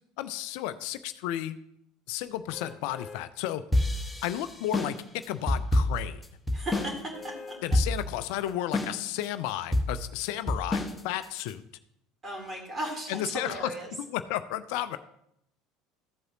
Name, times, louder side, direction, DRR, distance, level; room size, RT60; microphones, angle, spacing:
voice 1, 0.2-1.6 2.1-3.6 4.2-5.0 5.3-6.2 7.6-11.6 13.1-13.7 14.0-15.0, left 13 dB, 60° left, 12 dB, 0.4 m, -33 dB
sound 1, 2.5-3.2 3.8-3.9 6.7-7.6 8.2-8.3, left 4 dB, 20° left, 2.1 m, -44 dB
sound 2, 3.7-7.0 7.2-7.3 7.7-8.2 8.7-9.2 9.7-11.5, left 1 dB, 5° left, 1.2 m, -27 dB
voice 2, 6.5-7.5 12.2-13.9, right 1 dB, 25° right, 1 dB, 3.4 m, -36 dB
14.0 x 7.8 x 2.9 m, 0.77 s
figure-of-eight pair, 65°, 0 cm